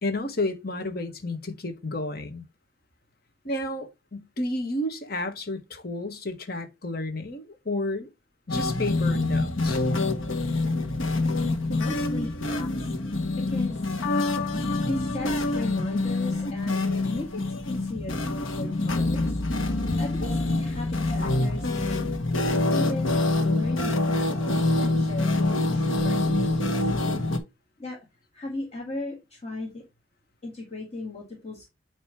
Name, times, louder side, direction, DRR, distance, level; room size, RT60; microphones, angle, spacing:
voice 1, 0.0-2.4 3.4-8.1 8.5-9.8, left 2 dB, 50° left, 1.4 m, -31 dB
sound 1, 8.5-27.4, left 2 dB, 80° left, 1.5 m, -26 dB
voice 2, 11.7-13.9 14.8-19.4 20.0-22.0 22.7-23.2 23.4-26.9 27.8-28.0 28.3-29.8 30.4-31.7, left 2 dB, 30° left, 1.6 m, -37 dB
8.9 x 3.1 x 4.7 m
head